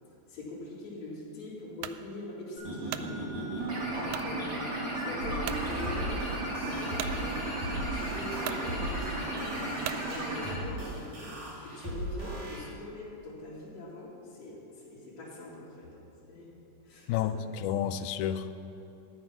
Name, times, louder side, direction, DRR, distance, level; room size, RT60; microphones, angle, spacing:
voice 1, 0.3-16.6 16.8-17.4, left 1 dB, 60° left, -8 dB, 3.5 m, -43 dB
sound 1, 1.8-2.0 2.6-3.1 4.1-4.3 4.9-5.0 5.4-5.7 7.0-7.2 8.0-8.1 8.4-8.7 9.8-10.1, right 13 dB, 80° right, 1.7 m, -38 dB
sound 2, 2.6-10.6, right 1 dB, 40° right, 2.6 m, -34 dB
sound 3, 5.2-12.6, right 1 dB, 60° right, 3.6 m, -39 dB
voice 2, 17.1-18.5, left 10 dB, 80° left, 9 dB, 2.0 m, -31 dB
13.5 x 9.5 x 6.0 m, 2.8 s
omnidirectional pair, 3.6 m